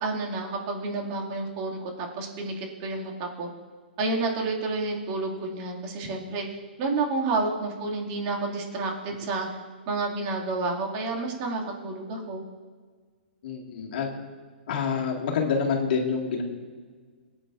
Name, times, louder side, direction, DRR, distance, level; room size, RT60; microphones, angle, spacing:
voice 1, 0.0-3.5 4.0-6.4 6.8-9.5 9.9-12.4, right 3 dB, 40° right, -1 dB, 2.4 m, -30 dB
voice 2, 13.4-14.1 14.7-16.4, left 5 dB, 55° left, 1 dB, 2.0 m, -27 dB
19.5 x 8.7 x 2.6 m, 1.5 s
hypercardioid pair, 140°, 6 cm